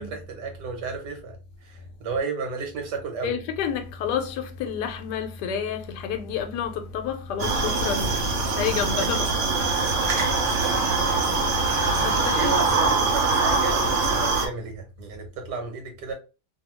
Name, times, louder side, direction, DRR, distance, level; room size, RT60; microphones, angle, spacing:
voice 1, 0.0-1.4 1.6-3.4 8.0-8.2 8.9-9.1 11.0-11.3 12.2-16.1, right 5 dB, 80° right, 1.5 m, -33 dB
voice 2, 3.2-8.2 8.4-9.4 10.0-10.3 12.0-12.6, left 7 dB, 80° left, 1.2 m, -29 dB
sound 1, 7.4-14.5, right 3 dB, 60° right, 0.8 m, -23 dB
2.7 x 2.6 x 2.9 m
omnidirectional pair, 1.8 m